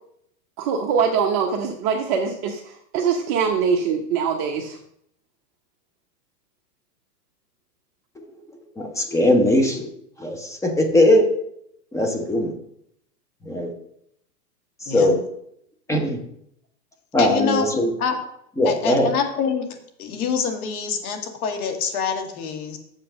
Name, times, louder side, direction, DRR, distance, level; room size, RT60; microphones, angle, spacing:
voice 1, 0.6-4.8, right 6 dB, 35° right, 1 dB, 0.9 m, -23 dB
voice 2, 8.8-9.9 10.2-11.3 11.9-12.5 13.4-13.7 14.8-15.2 15.9-16.2 17.1-17.9 18.6-19.1, left 1 dB, 5° left, 3 dB, 0.8 m, -20 dB
voice 3, 14.9-15.2 17.2-18.2 18.6-19.7 20.0-22.8, left 6 dB, 60° left, 5 dB, 1.9 m, -25 dB
7.1 x 5.8 x 6.4 m, 0.73 s
hypercardioid pair, 130°, 49 cm